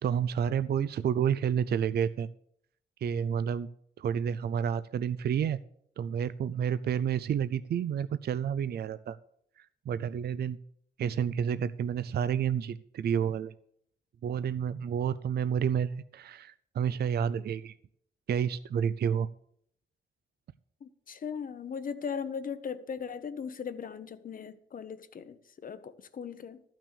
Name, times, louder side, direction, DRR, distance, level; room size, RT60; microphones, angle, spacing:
voice 1, 0.0-2.3 3.0-3.7 4.0-5.6 6.0-9.2 9.6-10.6 11.0-13.5 14.2-17.7 18.3-19.3, right 8 dB, 65° right, 0.4 m, -30 dB
voice 2, 20.8-26.6, left 6 dB, 50° left, 0.8 m, -38 dB
13.5 x 6.0 x 6.9 m
wide cardioid pair, 135°, 18 cm